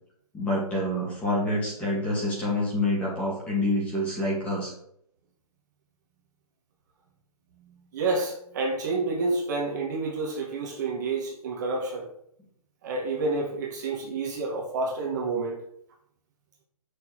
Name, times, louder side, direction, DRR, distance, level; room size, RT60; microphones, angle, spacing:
voice 1, 0.3-4.7, left 1 dB, 5° left, -5 dB, 2.2 m, -27 dB
voice 2, 7.6-12.1 12.8-15.6, right 3 dB, 30° right, -2 dB, 1.9 m, -29 dB
8.3 x 6.7 x 4.9 m, 0.71 s
hypercardioid pair, 170°, 20 cm